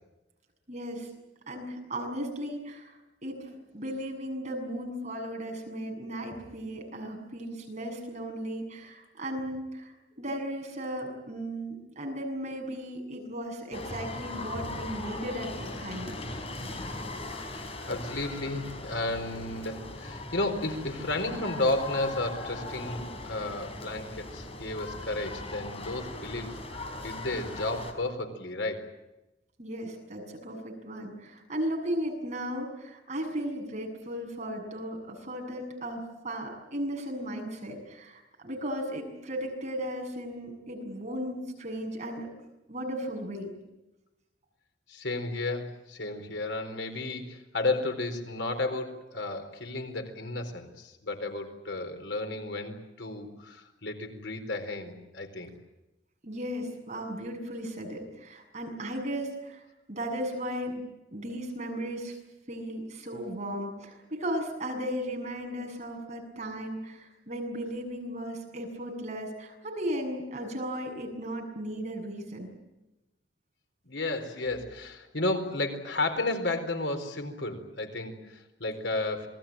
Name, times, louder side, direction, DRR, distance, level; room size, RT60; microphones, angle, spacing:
voice 1, 0.7-1.1 1.5-3.0 3.2-16.2 29.6-42.3 42.7-43.5 56.2-59.6 59.9-60.8 61.1-62.2 62.5-72.5, equal, 40° right, 3 dB, 7.2 m, -36 dB
sound 1, 13.7-27.9, left 2 dB, 35° left, 4.5 m, -39 dB
voice 2, 17.4-26.6 27.0-28.9 44.9-55.5 73.8-79.3, left 2 dB, 90° left, 6 dB, 4.3 m, -33 dB
27.5 x 20.0 x 8.9 m, 0.97 s
head